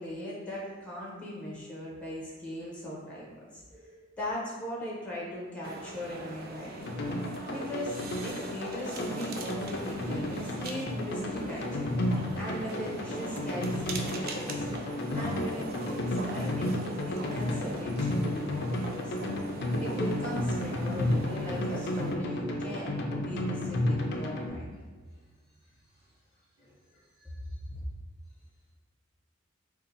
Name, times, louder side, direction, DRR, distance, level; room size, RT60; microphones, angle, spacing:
voice 1, 0.0-3.6 4.2-7.0 7.4-14.7 15.1-19.1 19.8-24.8 26.9-27.8, equal, 5° left, -5 dB, 0.6 m, -39 dB
voice 2, 3.7-4.0 25.1-25.4 25.6-26.1 26.6-27.3, right 1 dB, 20° right, -8 dB, 0.9 m, -62 dB
sound 1, 5.6-22.2, right 3 dB, 45° right, 0.4 m, -42 dB
sound 2, 6.8-24.5, left 1 dB, 55° left, 0.4 m, -32 dB
2.6 x 2.5 x 3.9 m, 1.4 s
head